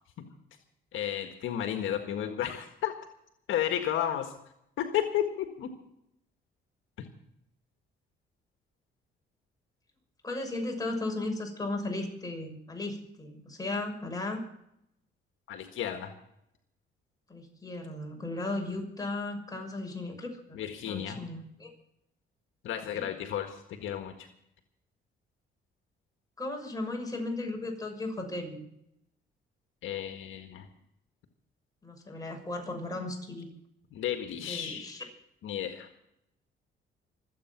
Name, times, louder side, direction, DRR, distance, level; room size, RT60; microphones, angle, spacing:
voice 1, 0.9-2.9 3.5-4.3 4.8-5.7 7.0-7.1 15.5-16.1 20.5-21.2 22.6-24.3 29.8-30.7 33.9-34.9 35.4-35.9, left 10 dB, 80° left, 6 dB, 1.7 m, -32 dB
voice 2, 10.2-14.4 17.3-20.6 20.8-21.7 22.9-23.1 26.4-28.6 31.8-33.5 34.3-35.0, left 2 dB, 20° left, 1 dB, 6.4 m, -36 dB
25.5 x 8.7 x 6.0 m, 0.78 s
cardioid pair, 90°, 20 cm